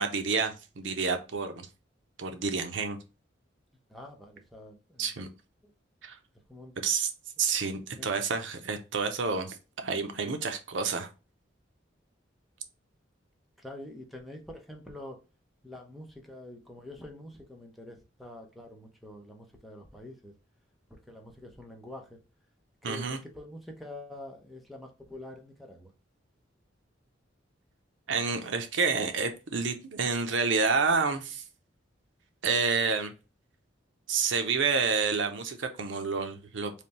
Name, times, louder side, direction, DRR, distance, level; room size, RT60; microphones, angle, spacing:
voice 1, 0.0-1.7 2.2-3.0 5.0-5.3 6.0-6.2 6.8-7.1 7.4-11.1 22.8-23.2 28.1-31.4 32.4-33.1 34.1-36.7, right 5 dB, 75° right, 0.7 m, -29 dB
voice 2, 3.9-5.1 6.5-6.8 8.0-8.1 13.6-15.2 15.6-20.3 21.1-22.2 22.8-25.9, left 1 dB, ahead, 0.8 m, -46 dB
3.4 x 2.6 x 4.1 m
head